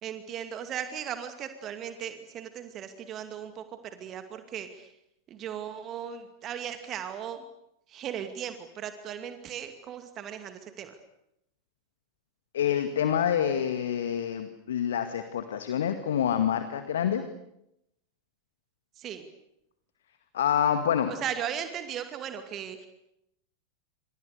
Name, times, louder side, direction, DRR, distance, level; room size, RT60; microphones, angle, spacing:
voice 1, 0.0-3.6 3.9-4.9 5.3-7.4 7.9-11.0 19.0-19.3 21.1-22.9, right 9 dB, 30° right, 8 dB, 2.4 m, -37 dB
voice 2, 12.5-17.2 20.3-21.1, left 9 dB, 60° left, 9 dB, 2.1 m, -27 dB
28.5 x 27.0 x 6.8 m, 0.82 s
figure-of-eight pair, 90°, 0 cm